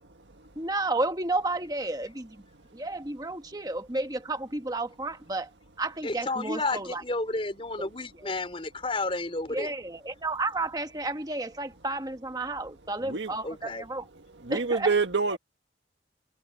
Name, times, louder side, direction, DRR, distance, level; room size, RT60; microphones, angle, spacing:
voice 1, 0.6-2.4 2.7-5.5 5.8-7.0 7.8-7.9 9.5-14.0 14.5-14.9 15.3-15.4, right 2 dB, 20° right, 1.3 m, -32 dB
voice 2, 6.0-9.7 13.4-13.8, left 2 dB, 30° left, 4.0 m, -31 dB
voice 3, 14.4-15.4, right 4 dB, 90° right, 1.7 m, -26 dB
head